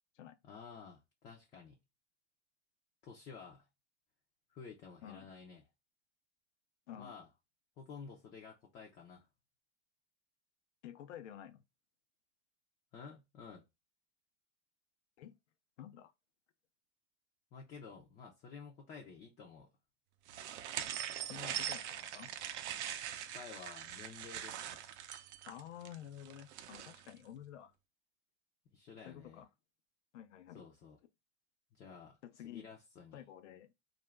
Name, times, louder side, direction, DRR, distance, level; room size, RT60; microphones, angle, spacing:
voice 1, 0.4-1.8 3.0-3.7 4.5-5.6 6.9-7.3 7.8-9.3 12.9-13.7 17.5-19.7 23.3-24.8 28.7-29.4 30.5-31.0 31.7-32.2 32.4-33.2, left 5 dB, 20° left, 0.4 m, -52 dB
voice 2, 10.8-11.6 15.2-15.4 15.8-16.1 21.3-22.3 25.5-27.7 29.1-29.5 30.1-30.6 32.2-32.7 33.1-33.7, left 10 dB, 85° left, 0.6 m, -50 dB
sound 1, 20.3-27.1, right 10 dB, 75° right, 0.6 m, -42 dB
2.4 x 2.1 x 3.2 m
supercardioid pair, 135°, 35 cm